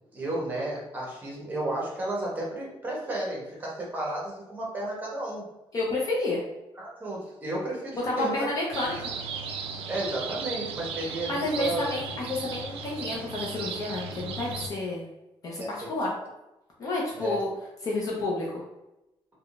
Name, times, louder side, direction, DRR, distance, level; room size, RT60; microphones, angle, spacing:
voice 1, 0.1-5.4 6.8-8.5 9.9-11.9 15.6-15.7 17.1-17.4, right 1 dB, 15° right, -4 dB, 0.9 m, -33 dB
voice 2, 5.7-6.4 8.0-9.1 11.3-15.0 15.4-16.1 16.8-17.5 17.8-18.6, left 2 dB, 35° left, -4 dB, 0.6 m, -30 dB
sound 1, 8.7-14.7, right 4 dB, 75° right, 0.4 m, -36 dB
3.5 x 2.2 x 2.4 m, 0.93 s
cardioid pair, 170°, 10 cm